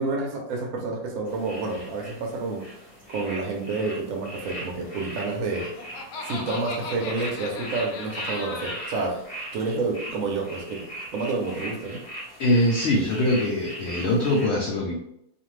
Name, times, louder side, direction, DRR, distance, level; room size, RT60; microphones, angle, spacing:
voice 1, 0.0-2.7 3.1-5.7 6.2-9.2 9.5-10.9 11.1-12.0, right 3 dB, 70° right, 0 dB, 1.0 m, -29 dB
sound 1, 1.3-14.5, right 1 dB, 35° left, 0.9 m, -40 dB
Laughter, 5.3-9.1, left 3 dB, 85° left, 1.1 m, -37 dB
voice 2, 12.4-15.0, left 1 dB, 70° left, -2 dB, 0.6 m, -22 dB
2.5 x 2.5 x 3.0 m, 0.78 s
omnidirectional pair, 1.6 m